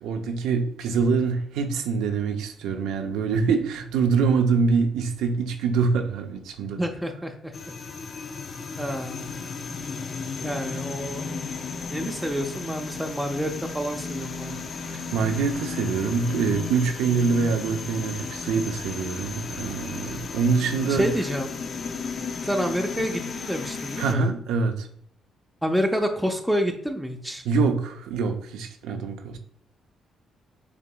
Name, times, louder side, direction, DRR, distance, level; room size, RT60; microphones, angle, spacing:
voice 1, 0.0-6.8 15.1-21.1 24.0-24.9 27.4-29.4, right 5 dB, 90° right, 5 dB, 0.5 m, -25 dB
voice 2, 6.8-7.5 8.8-9.3 10.4-11.3 11.9-14.6 20.9-21.5 22.4-24.3 25.6-27.4, equal, 5° right, 2 dB, 0.5 m, -28 dB
sound 1, 7.5-24.1, left 5 dB, 45° left, 0.5 m, -34 dB
6.8 x 2.9 x 2.2 m, 0.65 s
cardioid pair, 90°, 0 cm